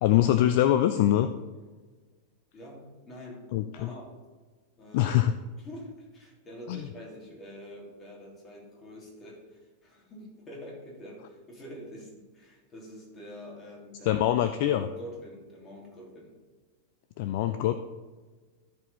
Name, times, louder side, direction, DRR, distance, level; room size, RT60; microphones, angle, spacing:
voice 1, 0.0-1.3 3.5-3.9 4.9-5.3 6.7-6.8 14.1-14.9 17.2-17.7, left 12 dB, 50° left, 10 dB, 0.4 m, -23 dB
voice 2, 1.5-1.9 2.5-4.2 4.8-5.2 5.6-14.3 14.6-16.4, equal, 25° left, -3 dB, 3.0 m, -46 dB
13.5 x 4.9 x 4.2 m, 1.3 s
figure-of-eight pair, 90°, 0 cm